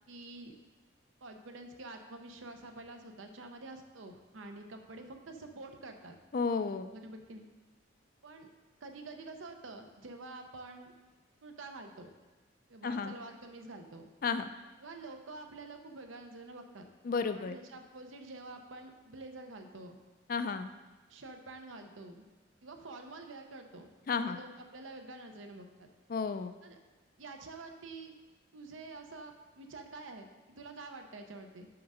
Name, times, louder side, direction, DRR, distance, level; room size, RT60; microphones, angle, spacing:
voice 1, 0.1-0.5 1.2-6.2 6.9-7.5 8.2-8.5 8.8-10.9 11.4-12.1 12.7-14.1 14.8-16.9 17.3-20.0 21.1-22.3 22.6-25.9 26.6-26.8 27.2-28.1 28.5-31.7, right 2 dB, 80° right, 5 dB, 0.8 m, -48 dB
voice 2, 6.3-6.9 12.8-13.2 14.2-14.5 17.0-17.6 20.3-20.7 24.1-24.4 26.1-26.5, left 5 dB, 45° left, 10 dB, 0.3 m, -32 dB
5.8 x 5.4 x 4.9 m, 1.2 s
head